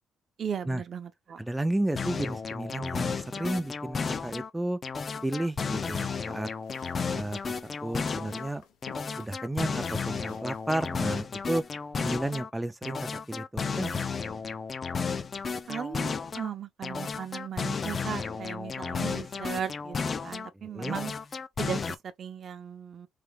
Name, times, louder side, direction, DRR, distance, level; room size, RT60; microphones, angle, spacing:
voice 1, 0.4-1.4 15.7-20.0 20.2-21.1 21.6-23.1, right 8 dB, 55° right, 0.7 m, -37 dB
voice 2, 1.4-4.8 5.2-6.5 7.1-8.6 9.2-11.6 12.0-13.0 13.3-14.0 20.5-21.0, right 1 dB, 10° right, 0.4 m, -32 dB
sound 1, 2.0-4.5 4.8-8.5 8.8-12.5 12.8-16.5 16.8-20.5 20.8-21.9, left 5 dB, 40° left, 0.5 m, -33 dB
sound 2, 5.4-11.1, left 7 dB, 90° left, 0.9 m, -53 dB
3.4 x 3.0 x 3.4 m
cardioid pair, 90°, 0 cm